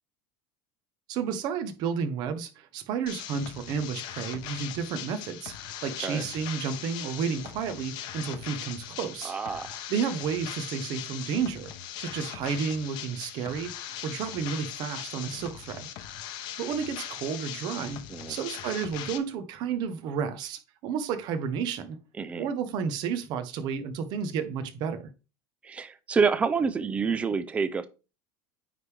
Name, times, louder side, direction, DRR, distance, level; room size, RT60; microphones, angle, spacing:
voice 1, 1.1-9.3 9.9-11.7 12.0-13.7 14.0-15.9 16.6-18.0 18.3-22.0 22.4-25.1, right 6 dB, 50° right, 9 dB, 1.0 m, -31 dB
sound 1, 3.1-19.2, left 10 dB, 50° left, 0.8 m, -40 dB
voice 2, 9.2-9.8 18.1-18.4 22.2-22.5 25.6-27.9, right 5 dB, 15° right, 12 dB, 0.4 m, -28 dB
9.3 x 3.5 x 3.3 m, 0.31 s
cardioid pair, 150°, 9 cm